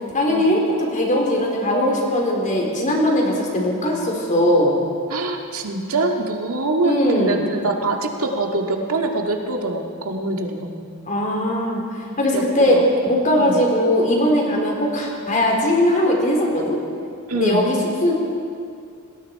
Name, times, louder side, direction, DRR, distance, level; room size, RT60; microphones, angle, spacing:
voice 1, 0.1-4.8 6.8-7.4 11.1-11.8 12.2-12.8 13.0-16.8 17.3-17.8 18.0-18.1, left 1 dB, 35° left, -1 dB, 4.2 m, -19 dB
voice 2, 5.1-10.9 12.3-12.8 13.4-13.6 17.3-17.6, right 2 dB, 70° right, 2 dB, 2.0 m, -24 dB
28.0 x 19.5 x 4.8 m, 2.4 s
head